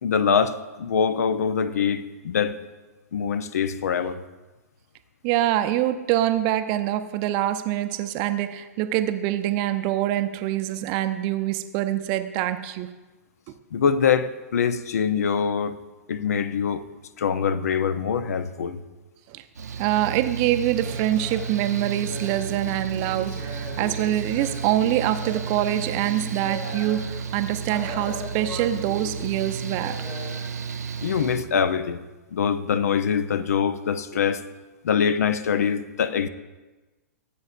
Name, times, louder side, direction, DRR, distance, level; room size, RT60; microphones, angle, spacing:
voice 1, 0.0-2.6 3.1-4.2 13.7-15.8 16.1-16.8 17.2-18.8 31.0-32.0 32.3-34.4 34.8-36.3, left 7 dB, 70° left, 0.6 m, -24 dB
voice 2, 5.2-12.9 19.3-19.4 19.8-30.0, right 13 dB, 40° right, 0.6 m, -25 dB
Mechanical fan, 19.5-31.4, right 6 dB, 80° right, 0.6 m, -33 dB
sound 1, 20.7-30.3, left 2 dB, 20° left, 2.8 m, -40 dB
16.0 x 8.4 x 2.5 m
hypercardioid pair, 115°, 9 cm